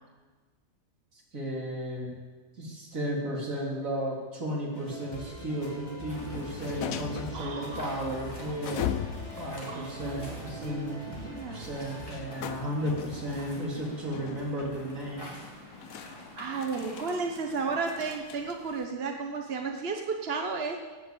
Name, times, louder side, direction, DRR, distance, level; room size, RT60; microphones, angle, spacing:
voice 1, 1.3-2.1 2.6-8.9 9.4-15.4, equal, 70° right, -3 dB, 3.9 m, -34 dB
sound 1, 4.7-12.1, equal, 30° left, 2.5 m, -43 dB
sound 2, 6.1-18.9, left 9 dB, 80° left, 1.2 m, -41 dB
Waves surf, 6.1-18.1, equal, 15° left, 4.3 m, -48 dB
voice 2, 7.3-8.1 9.7-10.1 10.6-11.0 11.3-11.7 16.4-20.8, right 4 dB, 50° right, 3 dB, 1.3 m, -33 dB
18.0 x 8.0 x 8.6 m, 1.4 s
omnidirectional pair, 1.4 m